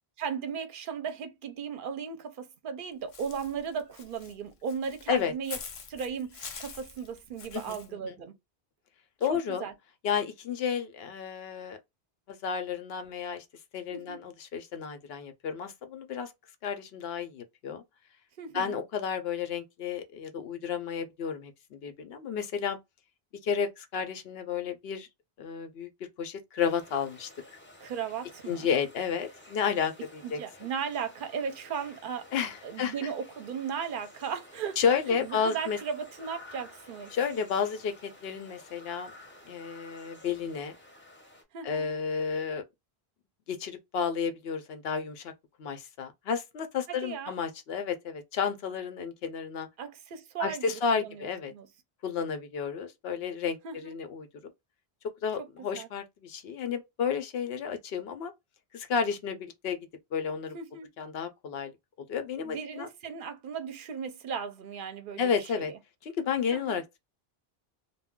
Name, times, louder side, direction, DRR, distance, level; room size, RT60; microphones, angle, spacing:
voice 1, 0.2-5.6 5.9-8.3 9.3-9.7 13.9-14.2 18.4-18.8 27.8-28.7 30.2-32.3 32.6-37.2 41.5-41.9 46.9-47.3 49.8-51.7 53.6-53.9 55.7-55.9 60.5-60.9 62.4-65.8 66.5-66.8, right 6 dB, 60° right, 0.7 m, -36 dB
Walk footsteps / Bird, 3.1-7.9, left 5 dB, 50° left, 0.4 m, -45 dB
voice 2, 7.5-8.2 9.2-9.7 10.0-11.8 12.3-13.4 13.7-16.3 16.6-17.8 18.5-22.8 23.4-25.1 25.4-25.9 26.2-27.3 28.5-30.4 32.3-32.9 34.8-35.8 37.1-39.1 39.5-40.7 41.6-42.6 43.5-45.3 45.6-49.7 50.4-51.5 52.0-54.3 55.2-58.3 58.7-60.6 61.0-61.7 62.1-62.9 65.2-65.7 66.0-66.8, left 6 dB, 75° left, 0.8 m, -32 dB
sound 1, 26.6-41.4, left 1 dB, 15° left, 0.7 m, -52 dB
2.3 x 2.2 x 3.5 m
omnidirectional pair, 1.0 m